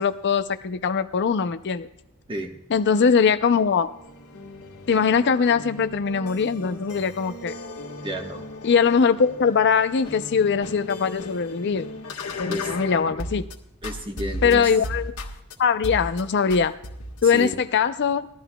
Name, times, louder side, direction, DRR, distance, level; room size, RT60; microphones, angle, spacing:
voice 1, 0.0-1.9 2.7-3.9 4.9-7.5 8.6-11.9 12.4-13.4 14.4-15.2 15.6-16.7 17.2-18.3, left 6 dB, 55° left, 10 dB, 0.5 m, -21 dB
sound 1, 3.8-13.5 13.8-15.5 15.8-16.2 16.5-17.3, left 2 dB, 85° left, 1.5 m, -36 dB
voice 2, 8.0-8.4 12.5-12.7 13.8-14.7 17.2-17.5, equal, 25° right, 3 dB, 1.2 m, -31 dB
20.0 x 13.0 x 2.3 m, 0.78 s
head